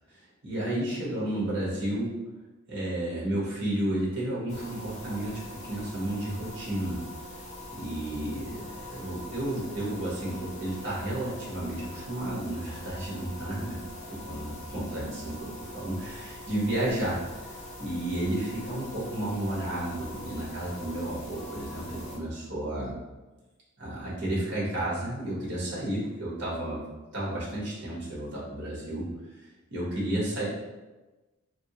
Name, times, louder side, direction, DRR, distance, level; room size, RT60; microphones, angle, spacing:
voice 1, 0.1-2.1 2.7-7.0 7.7-13.8 14.1-23.0 23.8-26.8 27.1-30.4, right 1 dB, 55° right, -7 dB, 1.2 m, -32 dB
sound 1, 4.5-22.2, left 1 dB, 35° left, 0.5 m, -43 dB
3.0 x 2.7 x 2.8 m, 1.1 s
head